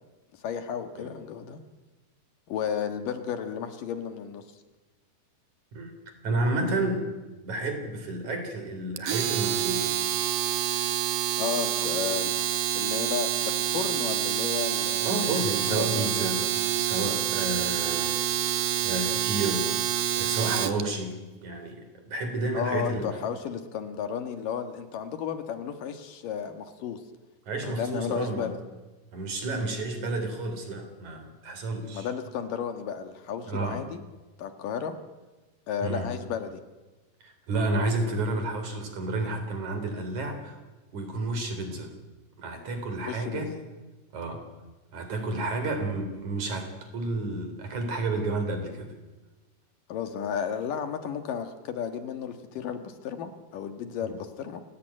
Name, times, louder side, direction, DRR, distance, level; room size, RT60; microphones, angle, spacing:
voice 1, 0.4-1.6 2.5-4.4 11.4-12.3 12.7-15.2 15.7-16.4 22.5-27.0 27.6-28.6 31.9-34.0 34.4-35.0 35.7-36.6 43.1-43.4 45.3-45.5 49.9-54.6, left 8 dB, 60° left, 7 dB, 2.8 m, -33 dB
voice 2, 6.2-7.1 7.4-9.9 15.0-16.4 16.8-18.2 18.8-19.8 20.2-21.1 21.4-23.1 27.5-28.5 29.1-32.1 33.5-33.8 35.8-36.1 37.2-40.6 40.9-41.9 42.4-43.5 44.1-44.4 44.9-48.9, right 2 dB, 45° right, 7 dB, 4.7 m, -31 dB
Domestic sounds home sounds, 9.0-20.8, right 11 dB, 65° right, 2.5 m, -27 dB
29.0 x 17.0 x 9.0 m, 1.2 s
omnidirectional pair, 4.9 m